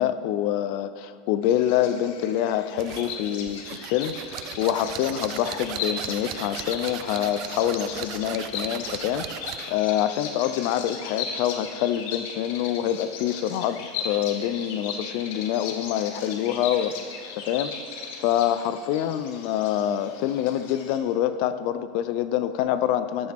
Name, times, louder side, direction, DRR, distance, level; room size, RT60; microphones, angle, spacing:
voice 1, 0.0-17.0 17.3-17.7 18.2-23.3, left 11 dB, 55° left, 12 dB, 0.5 m, -26 dB
Bird vocalization bird call bird song, 1.4-21.0, left 5 dB, 70° left, 1.4 m, -37 dB
sound 1, 2.8-9.8, right 12 dB, 45° right, 0.4 m, -37 dB
13.0 x 9.6 x 3.6 m, 2.2 s
supercardioid pair, 155°, 0 cm